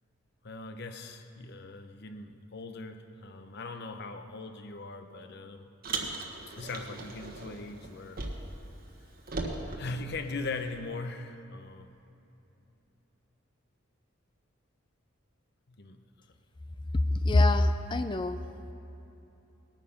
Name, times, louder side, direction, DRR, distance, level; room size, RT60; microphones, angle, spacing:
voice 1, 0.4-5.7 6.6-8.2 9.8-11.9 15.7-16.0, left 3 dB, 50° left, 8 dB, 0.8 m, -40 dB
Car, 5.8-8.7 8.9-10.7, right 3 dB, 45° right, 1.3 m, -38 dB
voice 2, 17.2-18.4, left 2 dB, 20° left, 9 dB, 0.4 m, -24 dB
20.0 x 9.0 x 5.8 m, 2.9 s
head